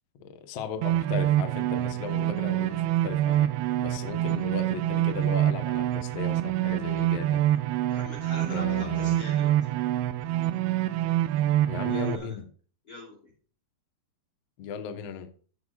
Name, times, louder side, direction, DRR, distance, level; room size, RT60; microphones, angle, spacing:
voice 1, 0.2-3.5 3.8-7.4 8.5-9.2 11.7-12.4 14.6-15.3, left 7 dB, 90° left, 7 dB, 1.4 m, -36 dB
sound 1, 0.8-12.2, right 13 dB, 80° right, 2.5 m, -26 dB
voice 2, 7.9-9.7 11.9-12.4 12.8-13.2, left 2 dB, 25° left, -3 dB, 3.2 m, -42 dB
14.0 x 10.5 x 2.5 m, 0.41 s
omnidirectional pair, 5.0 m